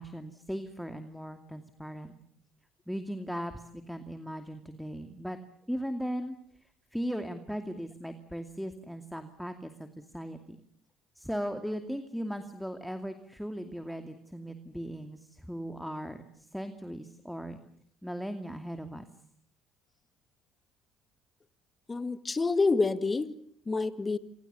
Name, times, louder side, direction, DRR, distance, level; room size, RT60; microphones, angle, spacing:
voice 1, 0.0-2.1 2.9-5.4 5.7-6.4 6.6-10.6 11.2-17.6 18.0-19.1, equal, ahead, 8 dB, 2.5 m, -38 dB
voice 2, 21.9-23.3 23.7-24.2, left 3 dB, 25° left, 12 dB, 2.1 m, -27 dB
27.5 x 26.5 x 7.0 m, 0.64 s
hypercardioid pair, 60°, 0 cm